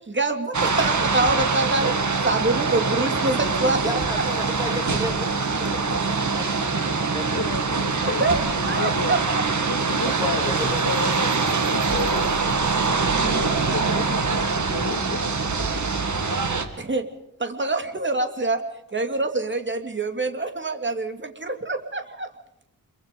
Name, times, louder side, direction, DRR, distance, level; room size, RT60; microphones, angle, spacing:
voice 1, 0.0-1.9 2.2-3.8 8.0-8.4 8.7-9.2 16.8-17.0 17.4-18.6 18.9-22.3, right 2 dB, 30° right, 6 dB, 2.5 m, -25 dB
sound 1, 0.5-16.6, right 4 dB, 55° right, 2.2 m, -24 dB
voice 2, 3.8-7.9 10.2-10.8, equal, 10° right, 5 dB, 2.8 m, -34 dB
voice 3, 7.3-9.2 9.6-12.4 13.1-15.7, left 4 dB, 55° left, 6 dB, 2.4 m, -33 dB
26.0 x 23.5 x 5.3 m, 0.85 s
wide cardioid pair, 145°, 36 cm